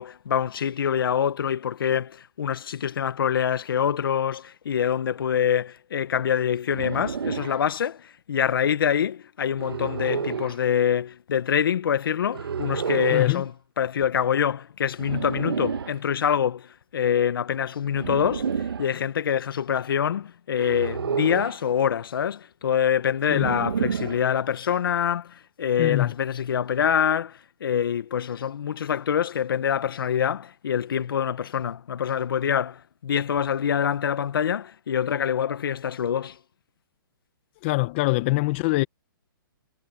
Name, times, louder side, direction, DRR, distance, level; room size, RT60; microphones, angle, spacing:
voice 1, 0.0-13.5 13.8-18.5 18.8-36.4, left 8 dB, 70° left, 1.4 m, -25 dB
sound 1, 6.7-7.6 9.6-10.6 12.3-13.3 15.0-16.0 17.9-18.9 20.6-21.6 23.3-24.3, right 6 dB, 85° right, 2.0 m, -30 dB
voice 2, 13.1-13.4 23.3-23.5 25.8-26.1 37.6-38.8, left 21 dB, 30° left, 1.3 m, -23 dB
hypercardioid pair, 160°, 12 cm